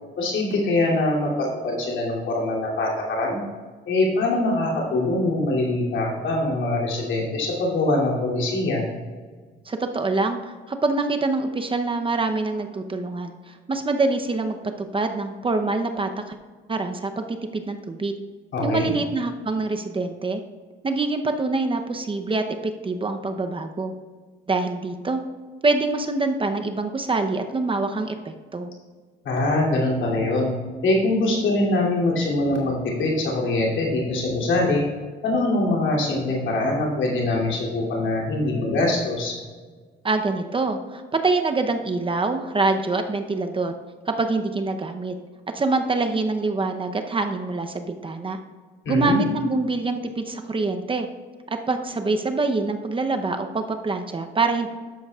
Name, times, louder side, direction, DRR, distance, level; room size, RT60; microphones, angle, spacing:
voice 1, 0.2-3.4 3.9-8.8 18.5-18.9 29.2-30.5 30.8-34.8 35.2-39.3 48.8-49.2, left 2 dB, 70° left, -3 dB, 2.8 m, -23 dB
voice 2, 9.7-16.4 16.7-18.1 18.6-20.4 20.8-23.9 24.5-25.2 25.6-28.7 40.0-43.7 44.1-45.1 45.5-48.4 48.9-51.1 51.5-54.7, right 3 dB, 25° right, 6 dB, 0.7 m, -25 dB
12.0 x 8.1 x 2.4 m, 1.5 s
cardioid pair, 90°, 20 cm